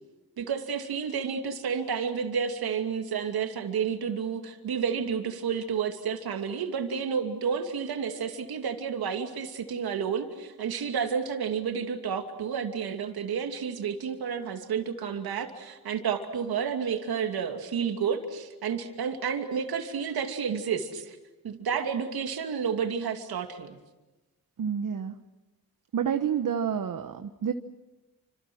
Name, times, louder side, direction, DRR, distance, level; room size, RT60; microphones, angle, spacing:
voice 1, 0.4-21.2 21.4-23.8, right 6 dB, 80° right, 5 dB, 2.7 m, -30 dB
voice 2, 24.6-25.1 25.9-27.5, right 8 dB, 60° right, 8 dB, 1.2 m, -29 dB
29.5 x 27.0 x 6.3 m, 1.1 s
cardioid pair, 55°, 36 cm